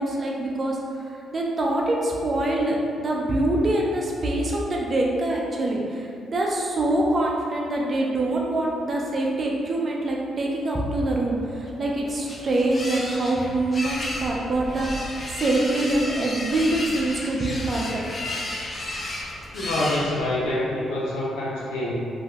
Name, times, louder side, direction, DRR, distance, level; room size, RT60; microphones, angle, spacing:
voice 1, 0.0-18.0, right 1 dB, 45° right, -2 dB, 0.5 m, -25 dB
sound 1, 11.7-20.6, left 1 dB, 40° left, 0.5 m, -33 dB
voice 2, 19.5-21.9, left 1 dB, 90° left, -6 dB, 0.5 m, -26 dB
2.7 x 2.1 x 3.5 m, 2.4 s
supercardioid pair, 60°, 0 cm